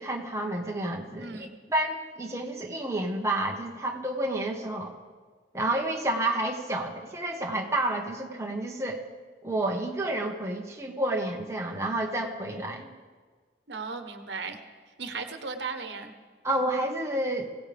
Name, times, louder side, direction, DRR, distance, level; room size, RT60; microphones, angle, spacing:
voice 1, 0.0-4.9 5.5-9.0 9.4-12.9 16.4-17.5, right 1 dB, 15° right, 0 dB, 1.3 m, -30 dB
voice 2, 1.2-1.6 13.7-14.6 15.0-16.1, right 4 dB, 85° right, 7 dB, 1.2 m, -36 dB
22.0 x 17.0 x 3.5 m, 1.5 s
head